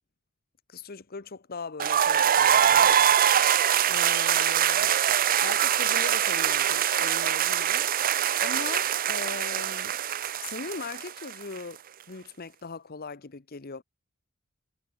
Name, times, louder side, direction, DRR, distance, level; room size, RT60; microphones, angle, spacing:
voice 1, 0.7-3.0 3.2-3.6 3.9-5.0 5.4-7.8 8.1-10.0 10.4-13.8, left 4 dB, 45° left, 1.0 m, -40 dB
sound 1, 1.8-11.6, right 9 dB, 40° right, 0.5 m, -23 dB
head